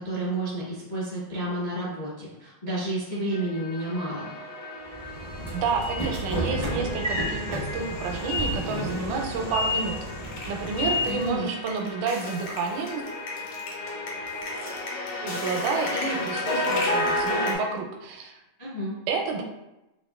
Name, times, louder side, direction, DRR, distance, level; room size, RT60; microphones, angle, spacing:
voice 1, 0.0-4.3 11.0-11.5 18.6-18.9, right 1 dB, 55° left, -11 dB, 0.5 m, -31 dB
sound 1, 3.3-17.5, left 2 dB, 75° left, 1.4 m, -33 dB
Train / Sliding door, 4.9-11.4, left 1 dB, 50° right, 0.4 m, -31 dB
voice 2, 5.5-10.0 10.5-13.0 15.2-18.4 19.1-19.4, right 5 dB, 90° right, 2 dB, 2.1 m, -30 dB
5.7 x 2.9 x 2.3 m, 0.94 s
omnidirectional pair, 3.6 m